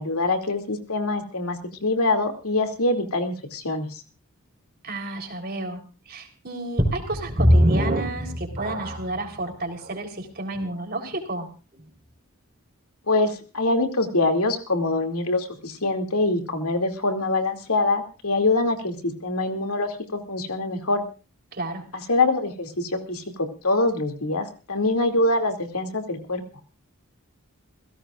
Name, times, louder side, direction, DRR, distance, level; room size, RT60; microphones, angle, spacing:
voice 1, 0.0-3.9 13.1-21.0 21.9-26.4, left 2 dB, 85° left, 5 dB, 2.6 m, -24 dB
voice 2, 4.8-11.5 21.5-21.8, right 2 dB, 45° right, 4 dB, 3.8 m, -32 dB
sound 1, 6.8-9.2 9.9-10.0 10.6-10.7, equal, 25° right, 4.6 m, -21 dB
29.0 x 16.5 x 2.5 m, 0.35 s
head